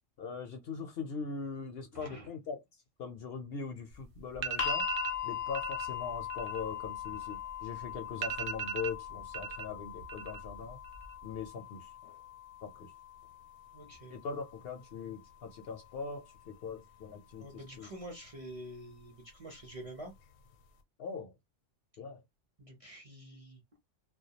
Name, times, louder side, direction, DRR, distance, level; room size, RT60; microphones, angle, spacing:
voice 1, 0.2-2.6 3.0-4.9 5.2-10.8 11.2-11.9 12.6-12.9 14.1-17.9 21.0-21.3 22.0-22.2, left 5 dB, 60° left, 0.7 m, -41 dB
voice 2, 1.9-2.3 13.7-14.1 17.4-20.1 22.6-23.6, right 1 dB, 40° right, 0.6 m, -47 dB
sound 1, 3.9-4.0 4.3-5.2 5.5-5.9 6.2-7.6 7.9-8.0 8.2-9.7 10.0-10.6 10.8-11.4, right 7 dB, 65° right, 0.8 m, -38 dB
sound 2, 4.6-16.7 17.7-17.8, left 10 dB, 85° left, 0.9 m, -41 dB
2.2 x 2.2 x 2.7 m
omnidirectional pair, 1.3 m